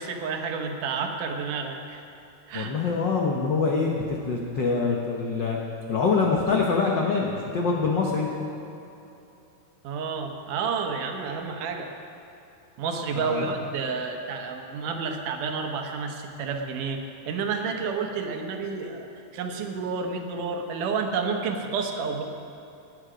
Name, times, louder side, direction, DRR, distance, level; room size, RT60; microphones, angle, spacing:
voice 1, 0.0-2.0 2.5-2.7 9.8-11.9 12.8-22.2, right 5 dB, 80° right, 4 dB, 2.6 m, -30 dB
voice 2, 2.5-5.6 5.9-8.3 13.1-13.5, left 4 dB, 85° left, -1 dB, 1.0 m, -25 dB
19.0 x 9.6 x 5.1 m, 2.8 s
omnidirectional pair, 3.7 m